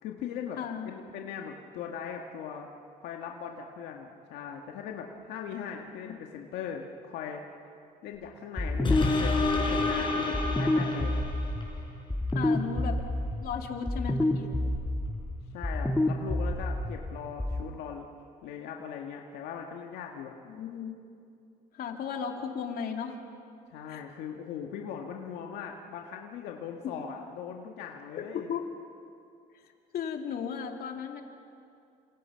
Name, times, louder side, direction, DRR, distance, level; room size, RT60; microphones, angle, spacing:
voice 1, 0.0-2.7 3.0-7.4 8.0-11.2 15.5-18.1 18.4-20.3 23.7-28.5, left 7 dB, 90° left, 1 dB, 1.8 m, -40 dB
voice 2, 0.6-0.9 6.0-6.1 12.3-13.0 13.4-14.5 20.4-21.0 21.7-23.1 23.9-24.0 26.8-27.0 28.1-28.6 29.9-31.2, left 7 dB, 65° left, 3 dB, 2.8 m, -35 dB
sound 1, 8.6-17.6, left 1 dB, 10° left, 1.7 m, -30 dB
sound 2, 8.8-11.8 12.3-12.4, left 3 dB, 30° left, 5.2 m, -29 dB
29.0 x 26.5 x 5.8 m, 2.5 s
cardioid pair, 110°, 17 cm